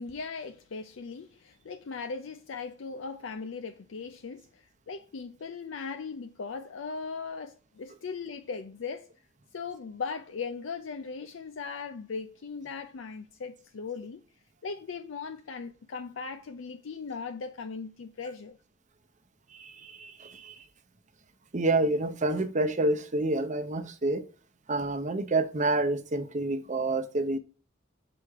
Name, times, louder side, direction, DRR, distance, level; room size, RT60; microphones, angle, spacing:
voice 1, 0.0-9.1 9.5-14.2 14.6-18.6, left 5 dB, 65° left, 0.5 m, -38 dB
voice 2, 19.5-20.6 21.5-24.2 24.7-27.4, right 2 dB, 35° right, 0.8 m, -28 dB
5.9 x 4.9 x 3.5 m
head